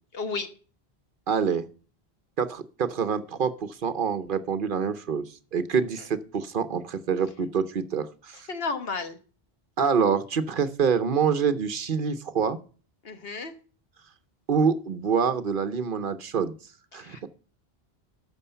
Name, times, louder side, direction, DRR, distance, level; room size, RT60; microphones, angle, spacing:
voice 1, 0.1-0.5 8.5-9.2 13.0-13.5 16.9-17.3, left 4 dB, 65° left, 8 dB, 1.5 m, -32 dB
voice 2, 1.3-1.7 2.4-8.5 9.8-12.6 14.5-16.5 16.9-17.3, right 6 dB, 55° right, 12 dB, 0.9 m, -26 dB
12.5 x 6.3 x 5.5 m, 0.39 s
omnidirectional pair, 1.1 m